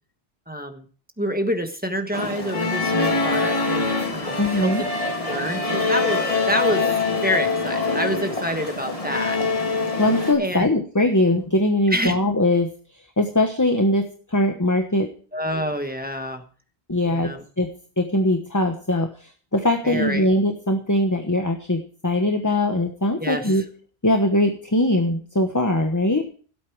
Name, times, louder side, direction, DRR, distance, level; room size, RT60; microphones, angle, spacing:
voice 1, 0.5-0.9 1.2-4.9 5.2-6.8 7.2-9.4 10.4-10.7 11.9-12.2 15.3-16.4 17.0-17.4 19.8-20.3 23.2-23.6, equal, 10° right, 6 dB, 1.3 m, -27 dB
sound 1, 2.1-10.3, left 3 dB, 35° left, 2.8 m, -24 dB
voice 2, 4.4-4.8 10.0-12.7 13.2-15.1 16.9-17.3 17.6-23.6 24.0-26.3, left 1 dB, 20° left, 5 dB, 1.2 m, -21 dB
17.0 x 8.4 x 4.7 m, 0.42 s
omnidirectional pair, 1.1 m